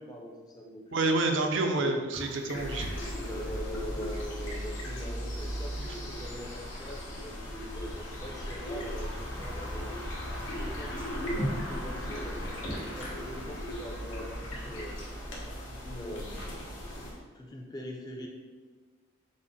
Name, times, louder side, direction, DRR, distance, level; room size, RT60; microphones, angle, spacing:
voice 1, 0.0-1.0 1.3-1.9 3.2-10.0 10.6-12.4 13.0-15.0 15.6-16.4 17.2-18.3, equal, 20° left, 0 dB, 0.5 m, -43 dB
voice 2, 0.9-3.2 5.8-6.0, right 2 dB, 65° right, 4 dB, 0.5 m, -29 dB
sound 1, 2.1-17.2, equal, 85° left, 1.5 m, -41 dB
sound 2, 2.5-17.1, equal, 65° left, 1.0 m, -38 dB
6.1 x 2.1 x 4.0 m, 1.5 s
head